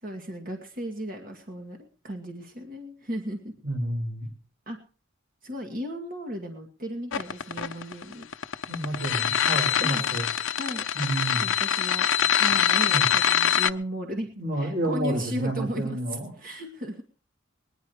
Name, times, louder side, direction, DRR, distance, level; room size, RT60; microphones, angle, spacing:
voice 1, 0.0-1.8 2.0-3.5 4.7-4.8 5.4-8.3 9.8-10.0 10.6-10.8 11.3-12.1 12.4-17.0, equal, 45° right, 3 dB, 2.0 m, -35 dB
voice 2, 3.6-4.3 8.7-10.3 10.9-11.5 12.5-12.6 12.9-13.1 14.4-16.3, right 1 dB, 65° right, -2 dB, 5.6 m, -30 dB
sound 1, 7.1-13.7, left 8 dB, 75° left, 0.7 m, -24 dB
20.0 x 10.5 x 4.7 m, 0.38 s
head